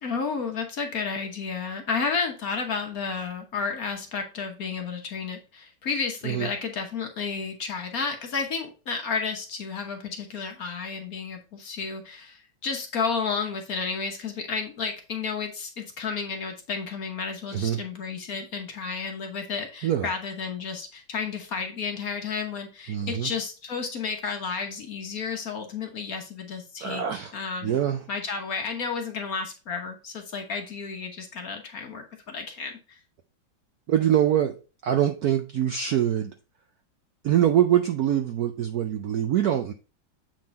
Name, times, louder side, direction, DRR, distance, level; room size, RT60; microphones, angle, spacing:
voice 1, 0.0-27.0 27.3-27.8 28.1-33.0, left 5 dB, 50° left, 3 dB, 1.3 m, -32 dB
voice 2, 22.9-23.3 26.8-27.3 27.6-28.0 33.9-34.5 34.8-36.3 37.2-39.7, right 10 dB, 70° right, 6 dB, 0.9 m, -24 dB
7.7 x 3.8 x 4.1 m, 0.32 s
omnidirectional pair, 2.2 m